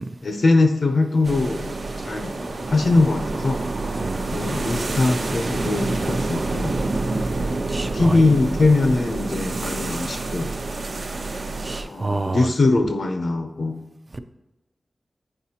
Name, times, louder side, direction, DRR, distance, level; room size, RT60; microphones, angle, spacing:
voice 1, 0.2-2.4 2.7-3.6 4.3-6.8 7.9-10.5 11.8-13.8, left 3 dB, 60° left, 6 dB, 0.5 m, -21 dB
sound 1, 1.2-11.8, right 2 dB, 60° right, 0.7 m, -27 dB
voice 2, 7.7-8.2 11.6-12.5 14.1-14.2, right 2 dB, 35° right, 10 dB, 0.4 m, -29 dB
7.8 x 5.0 x 2.8 m, 1.0 s
wide cardioid pair, 120°, 0 cm